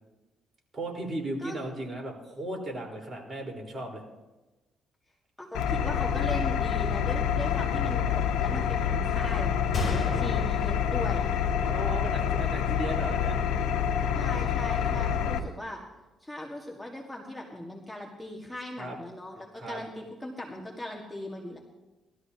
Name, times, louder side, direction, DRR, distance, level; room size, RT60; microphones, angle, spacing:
voice 1, 0.7-4.0 10.0-10.2 11.6-13.4 14.7-15.2 18.8-19.0 19.6-19.8, right 1 dB, 30° right, -1 dB, 4.1 m, -36 dB
voice 2, 5.4-9.5 10.2-11.3 14.1-15.8 16.2-21.6, left 1 dB, 5° left, -1 dB, 1.7 m, -39 dB
Engine, 5.5-15.4, left 8 dB, 90° left, 1.0 m, -27 dB
Gunshot gunfire, 9.7-11.7 12.0-12.1 12.8-13.0, left 1 dB, 25° left, 5.7 m, -34 dB
20.0 x 13.0 x 2.8 m, 1.1 s
cardioid pair, 90°, 0 cm